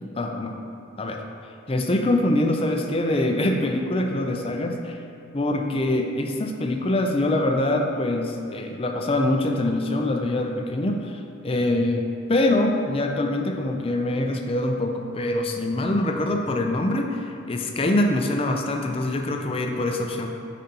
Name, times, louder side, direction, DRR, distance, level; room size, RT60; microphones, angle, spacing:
voice 1, 0.2-0.6 1.0-1.2 1.7-5.0 5.3-12.0 12.3-20.3, left 1 dB, 30° left, 3 dB, 0.5 m, -24 dB
8.9 x 5.1 x 2.9 m, 2.5 s
head